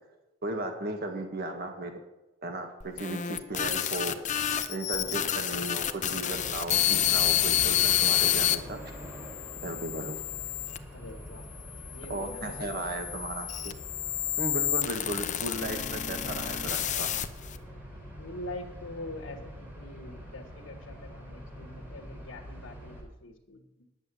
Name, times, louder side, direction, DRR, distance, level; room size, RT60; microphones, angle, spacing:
voice 1, 0.4-1.9 2.4-4.2 4.7-8.8 9.6-10.2 12.1-13.7 14.4-17.1, right 2 dB, 50° right, 4 dB, 1.7 m, -35 dB
sound 1, 2.8-8.6 9.2-10.8 11.6-17.6, left 11 dB, 40° left, 0.7 m, -29 dB
sound 2, 6.3-23.0, equal, 10° right, 3.9 m, -45 dB
voice 2, 10.9-11.4 11.9-12.7 18.2-23.9, left 1 dB, 80° left, 0 dB, 1.5 m, -44 dB
10.5 x 7.2 x 8.4 m, 0.96 s
head